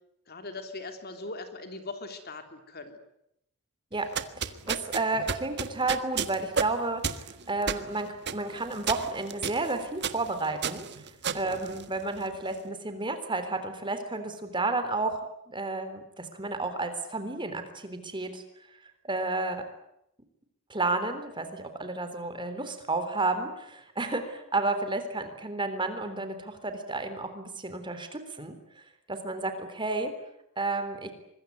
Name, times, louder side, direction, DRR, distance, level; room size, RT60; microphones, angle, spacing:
voice 1, 0.3-3.0 11.3-11.6, left 3 dB, 45° left, 7 dB, 3.4 m, -40 dB
sound 1, 4.0-12.4, right 6 dB, 50° right, 1.6 m, -33 dB
voice 2, 4.4-10.9 11.3-15.2 15.5-18.4 19.0-19.6 20.7-28.6 29.1-30.1 30.6-31.1, right 3 dB, 20° right, 9 dB, 3.6 m, -31 dB
25.0 x 21.5 x 9.6 m, 0.79 s
head